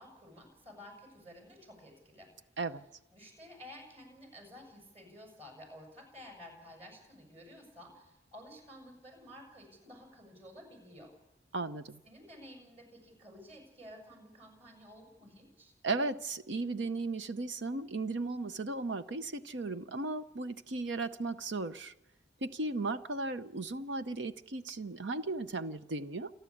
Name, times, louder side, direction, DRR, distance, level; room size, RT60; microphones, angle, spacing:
voice 1, 0.0-2.3 3.1-11.1 12.0-15.7, equal, 30° right, 7.1 m, -52 dB
voice 2, 11.5-12.0 15.8-21.9 22.4-26.3, right 3 dB, 70° right, 0.8 m, -36 dB
28.5 x 11.5 x 8.6 m
head